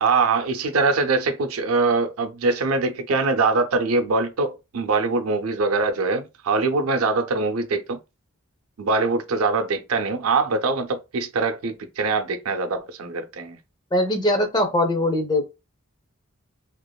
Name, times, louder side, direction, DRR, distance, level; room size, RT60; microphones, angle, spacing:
voice 1, 0.0-8.0 8.8-13.6, right 3 dB, 90° right, 0.5 m, -23 dB
voice 2, 13.9-15.5, left 1 dB, 20° left, 0.5 m, -21 dB
2.8 x 2.4 x 2.2 m
head